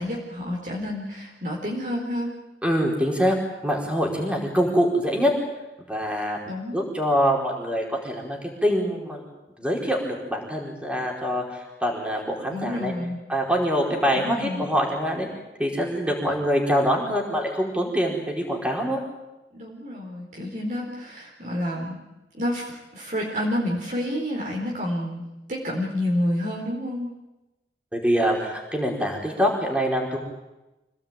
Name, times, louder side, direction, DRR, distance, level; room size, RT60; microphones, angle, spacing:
voice 1, 0.0-2.4 6.4-6.8 12.5-13.2 14.1-14.7 19.5-22.0 22.3-25.2 25.5-27.1, left 1 dB, 45° right, -2 dB, 4.3 m, -29 dB
voice 2, 2.6-3.3 3.6-5.3 5.9-6.4 6.7-9.2 9.6-12.9 13.3-15.3 15.6-19.0 27.9-30.2, equal, 5° right, 0 dB, 4.7 m, -24 dB
27.0 x 18.0 x 9.0 m, 1.0 s
head